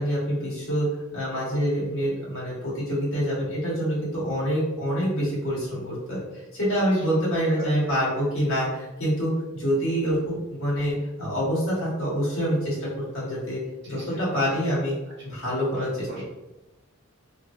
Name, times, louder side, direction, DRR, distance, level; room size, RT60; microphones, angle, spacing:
voice 1, 0.0-6.2 6.5-13.6 13.9-15.0 15.2-15.9, equal, 70° left, -7 dB, 1.4 m, -26 dB
voice 2, 7.6-8.3 13.8-14.2 15.1-15.2 15.7-16.2, right 1 dB, 55° right, -5 dB, 1.0 m, -43 dB
3.0 x 2.6 x 2.6 m, 0.99 s
head